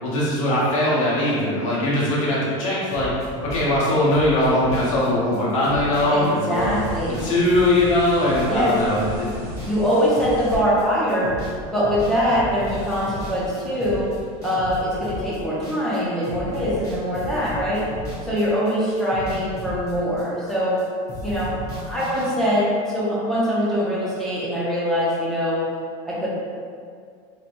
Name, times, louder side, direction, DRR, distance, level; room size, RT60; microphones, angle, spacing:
voice 1, 0.0-3.1 3.4-6.7 7.1-9.3, left 1 dB, 80° left, -7 dB, 1.1 m, -21 dB
sound 1, 2.9-11.6 11.8-16.0 16.2-18.7 19.0-20.8 21.1-22.3, left 1 dB, 20° left, 1.1 m, -35 dB
voice 2, 6.1-7.2 8.4-8.7 9.6-11.4 11.7-14.1 14.4-17.9 18.2-20.9 21.2-21.6 21.9-25.7 26.0-26.3, equal, ahead, -9 dB, 0.6 m, -23 dB
sound 2, 6.5-10.6, right 1 dB, 55° right, 0.9 m, -38 dB
3.2 x 2.9 x 2.5 m, 2.2 s
supercardioid pair, 140°, 17 cm